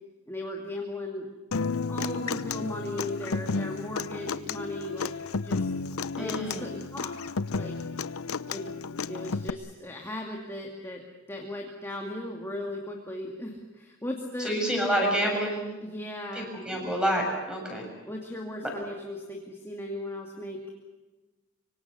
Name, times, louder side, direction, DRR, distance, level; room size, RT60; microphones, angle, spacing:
voice 1, 0.3-1.3 1.9-5.1 5.4-5.7 6.2-7.2 7.5-7.8 8.5-8.6 9.1-11.0 11.3-14.5 15.8-16.9 18.1-20.6, left 1 dB, 10° left, 1 dB, 2.3 m, -37 dB
Human voice / Acoustic guitar, 1.5-9.5, left 4 dB, 90° left, 0.8 m, -32 dB
voice 2, 6.2-6.7 14.4-15.6 16.3-17.9, equal, 5° right, 0 dB, 7.3 m, -28 dB
25.5 x 24.5 x 7.0 m, 1.2 s
head